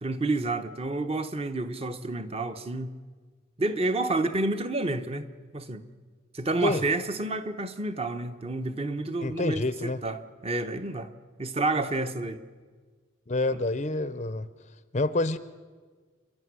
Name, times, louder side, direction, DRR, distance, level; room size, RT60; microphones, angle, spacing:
voice 1, 0.0-2.9 3.6-5.3 5.5-5.8 6.3-11.1 11.4-12.4, right 2 dB, 30° right, 1.0 m, -29 dB
voice 2, 9.2-10.0 13.3-14.5 14.9-15.4, left 2 dB, 35° left, 0.6 m, -27 dB
28.0 x 12.0 x 9.6 m
head